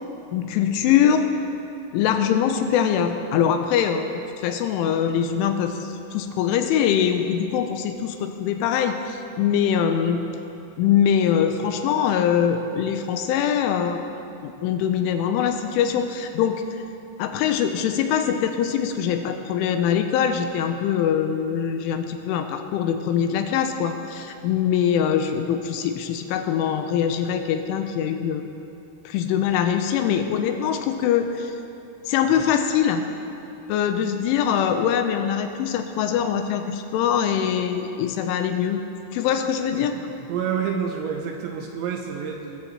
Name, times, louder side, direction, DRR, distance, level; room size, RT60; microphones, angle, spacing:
voice 1, 0.3-1.3 1.9-4.1 4.4-10.3 10.8-14.0 14.4-16.8 17.2-28.5 29.1-31.5 32.1-33.0 33.7-38.8 39.1-40.0, left 8 dB, 85° left, 6 dB, 3.0 m, -23 dB
voice 2, 40.3-42.6, right 7 dB, 80° right, 2 dB, 2.8 m, -28 dB
21.0 x 14.5 x 3.0 m, 2.7 s
omnidirectional pair, 5.8 m